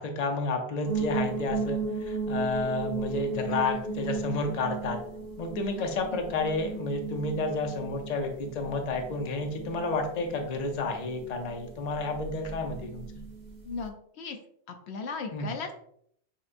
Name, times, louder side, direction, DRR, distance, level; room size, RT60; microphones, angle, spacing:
voice 1, 0.0-5.0 5.4-13.2 15.3-15.6, left 3 dB, 45° left, 3 dB, 0.6 m, -31 dB
sound 1, 0.8-13.9, right 4 dB, 45° right, 0.9 m, -36 dB
voice 2, 13.6-14.4 14.7-15.8, left 4 dB, 75° left, 4 dB, 0.8 m, -37 dB
6.4 x 2.2 x 2.5 m, 0.67 s
omnidirectional pair, 1.1 m